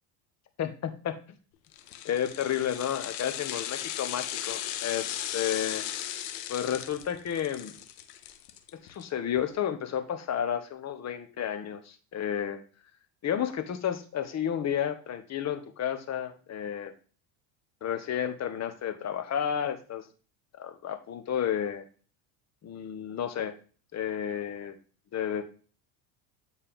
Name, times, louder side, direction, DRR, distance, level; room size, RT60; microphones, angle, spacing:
voice 1, 0.6-1.1 2.0-5.9 6.5-7.7 8.9-12.6 13.2-16.9 17.8-20.1 20.6-21.8 22.6-23.5 23.9-24.7 25.1-25.4, left 9 dB, 35° left, 9 dB, 1.1 m, -31 dB
sound 1, 1.7-9.0 9.4-9.5, left 11 dB, 85° left, 0.9 m, -37 dB
8.7 x 4.4 x 3.6 m, 0.38 s
supercardioid pair, 105°, 46 cm